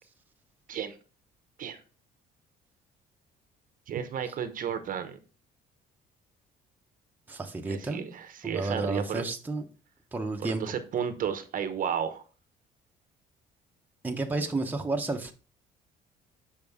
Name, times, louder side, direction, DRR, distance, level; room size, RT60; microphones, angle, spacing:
voice 1, 3.9-5.2 7.7-9.2 10.4-12.2, right 8 dB, 55° right, 0.9 m, -33 dB
voice 2, 7.3-8.1 8.4-9.6 10.1-10.6 14.0-15.3, right 2 dB, 10° right, 0.9 m, -31 dB
6.8 x 5.1 x 3.6 m
cardioid pair, 110°, 17 cm